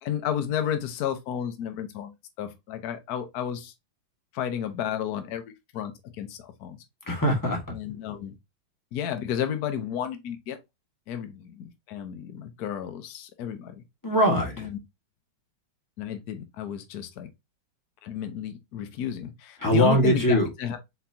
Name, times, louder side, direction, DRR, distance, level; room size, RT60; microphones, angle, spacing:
voice 1, 0.0-3.7 4.3-6.8 7.7-8.4 8.9-10.6 11.1-13.8 14.6-14.8 16.0-17.3 18.0-20.8, left 9 dB, 60° left, 1.2 m, -32 dB
voice 2, 7.1-7.6 14.0-14.7 19.6-20.5, equal, 10° left, 1.3 m, -22 dB
4.4 x 4.2 x 2.7 m
omnidirectional pair, 2.2 m